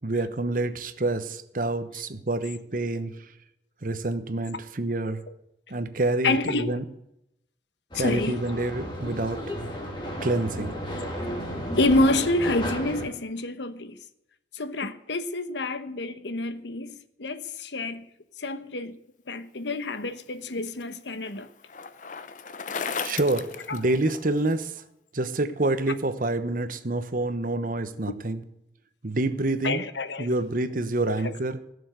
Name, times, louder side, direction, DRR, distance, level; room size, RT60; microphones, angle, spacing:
voice 1, 0.0-3.2 3.8-5.2 5.7-6.8 7.9-9.4 10.2-10.8 23.0-24.8 25.1-28.4 29.0-29.8 30.2-31.6, right 2 dB, 50° right, 1.0 m, -27 dB
voice 2, 6.2-6.8 7.9-8.4 11.8-14.0 14.5-18.0 18.4-19.0 19.3-21.5 23.7-23.8 28.1-28.2 29.6-30.3 31.1-31.4, left 2 dB, 85° left, 1.1 m, -28 dB
sound 1, 7.9-13.1, equal, 25° left, 2.6 m, -33 dB
Bicycle, 20.1-24.5, left 5 dB, 45° left, 0.7 m, -36 dB
16.5 x 7.0 x 8.1 m
head